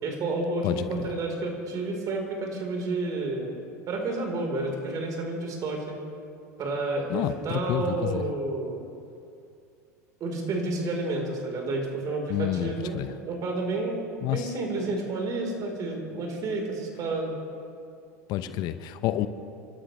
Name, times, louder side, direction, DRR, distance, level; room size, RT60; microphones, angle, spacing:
voice 1, 0.0-3.6 3.9-6.0 6.6-8.8 10.2-13.0 13.3-14.0 14.3-17.3 18.4-18.5, right 2 dB, 40° right, 1 dB, 4.1 m, -30 dB
voice 2, 0.6-1.1 7.1-8.2 12.3-13.1 14.2-14.5 18.3-19.3, left 13 dB, 50° left, 11 dB, 0.8 m, -29 dB
30.0 x 12.5 x 3.3 m, 2.5 s
hypercardioid pair, 85°, 9 cm